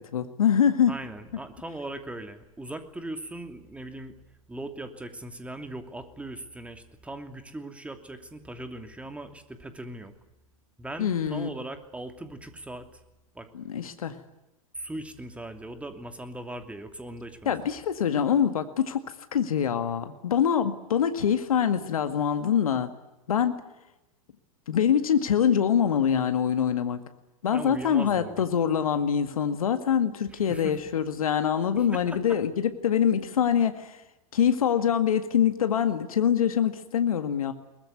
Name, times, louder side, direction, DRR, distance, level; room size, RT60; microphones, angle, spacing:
voice 1, 0.0-1.0 11.0-11.5 13.5-14.2 17.5-19.0 19.3-22.9 23.3-23.6 24.7-27.0 27.4-34.0 34.3-37.5, left 8 dB, 75° left, 9 dB, 1.9 m, -24 dB
voice 2, 0.9-4.2 4.5-10.1 10.8-13.0 13.3-13.5 14.7-17.6 27.5-28.5 30.5-30.8 31.8-32.2, right 2 dB, 5° right, 7 dB, 2.8 m, -39 dB
22.5 x 20.0 x 9.6 m, 0.96 s
hypercardioid pair, 100°, 18 cm